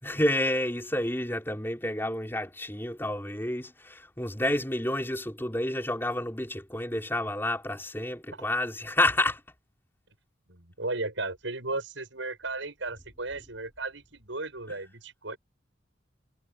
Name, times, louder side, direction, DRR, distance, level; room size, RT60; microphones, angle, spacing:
voice 1, 0.0-9.4 14.7-14.8, left 1 dB, 10° left, 5.3 m, -29 dB
voice 2, 10.5-15.4, right 2 dB, 85° right, 7.8 m, -35 dB
head